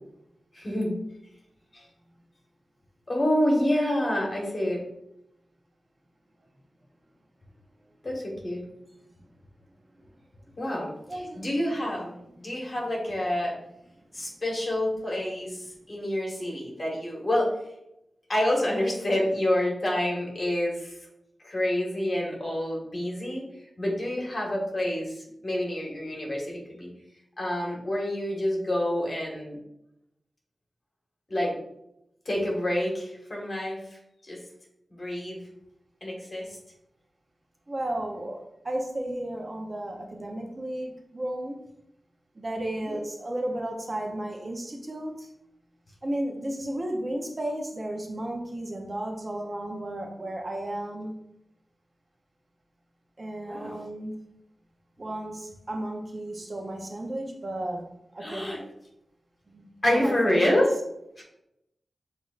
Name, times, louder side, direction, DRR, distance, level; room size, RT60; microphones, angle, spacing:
voice 1, 0.5-1.0 1.7-1.8 3.1-4.8 8.0-8.6 10.6-10.9 11.3-13.6 14.1-17.5 18.3-21.0 21.4-23.4 23.8-26.9 27.4-29.6 31.3-31.5 32.2-34.0 34.2-34.4 35.0-35.5 36.0-36.6 42.8-43.0 53.4-53.8 58.2-58.6 59.8-60.7 61.2-61.3, left 1 dB, 45° left, -2 dB, 1.5 m, -28 dB
voice 2, 11.1-11.8 37.7-41.6 42.3-45.3 46.0-51.1 53.2-54.1 55.0-57.9 58.1-58.5 59.5-60.6, right 1 dB, 40° right, 2 dB, 0.7 m, -33 dB
7.1 x 2.6 x 2.5 m, 0.83 s
wide cardioid pair, 75°, 0 cm